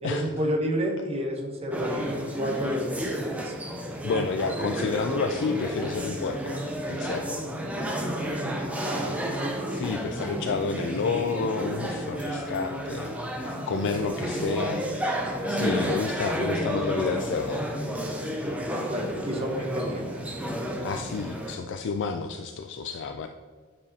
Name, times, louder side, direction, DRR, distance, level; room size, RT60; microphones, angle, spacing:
voice 1, 0.0-3.5 8.8-9.1 18.6-20.1, equal, 30° right, 2 dB, 0.9 m, -30 dB
sound 1, 1.7-21.6, equal, 5° right, 0.6 m, -31 dB
voice 2, 4.0-7.4 9.7-13.1 13.4-15.0 15.5-17.7 20.8-23.3, left 4 dB, 55° left, 5 dB, 0.3 m, -30 dB
9.4 x 5.0 x 2.8 m, 1.5 s
head